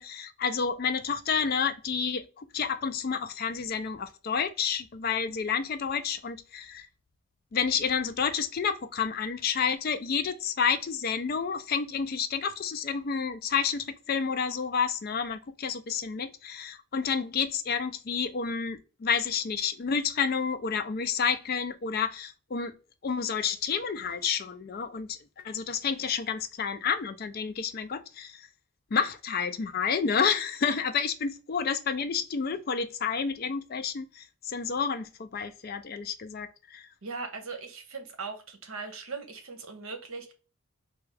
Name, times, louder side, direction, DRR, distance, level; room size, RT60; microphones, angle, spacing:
voice 1, 0.0-6.9 7.5-22.7 23.0-25.2 25.4-28.5 28.9-36.9, left 6 dB, 45° left, 0.4 m, -30 dB
voice 2, 37.0-40.3, right 4 dB, 75° right, 0.9 m, -39 dB
3.4 x 2.3 x 3.2 m
head